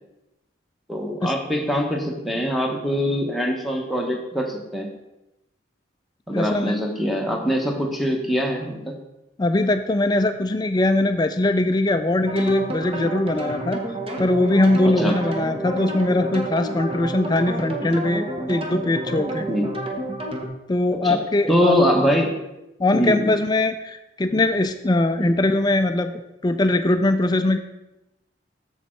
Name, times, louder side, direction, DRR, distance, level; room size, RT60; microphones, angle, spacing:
voice 1, 0.9-4.9 6.3-8.9 15.0-15.1 19.5-19.7 21.0-21.2 21.5-22.3 22.9-23.3, equal, ahead, 1 dB, 1.1 m, -23 dB
voice 2, 6.3-6.8 9.4-13.8 14.2-19.5 20.7-21.8 22.8-26.1 26.4-27.6, left 2 dB, 20° left, 8 dB, 0.3 m, -21 dB
sound 1, 12.3-20.5, right 1 dB, 30° right, 1.0 m, -30 dB
7.3 x 7.0 x 4.5 m, 0.93 s
head